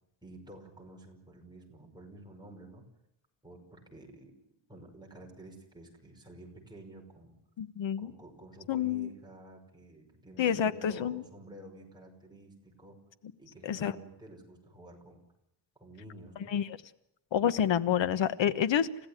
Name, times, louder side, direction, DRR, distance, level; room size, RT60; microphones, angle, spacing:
voice 1, 0.2-2.9 3.4-4.4 4.7-7.4 8.0-13.0 13.4-15.2 15.8-16.6, right 1 dB, 10° right, 0 dB, 5.5 m, -51 dB
voice 2, 7.6-8.1 8.7-9.1 10.4-11.2 13.6-13.9 16.5-16.7 17.3-19.1, left 9 dB, 80° left, 13 dB, 1.3 m, -28 dB
29.5 x 16.0 x 10.0 m, 0.79 s
wide cardioid pair, 175°, 44 cm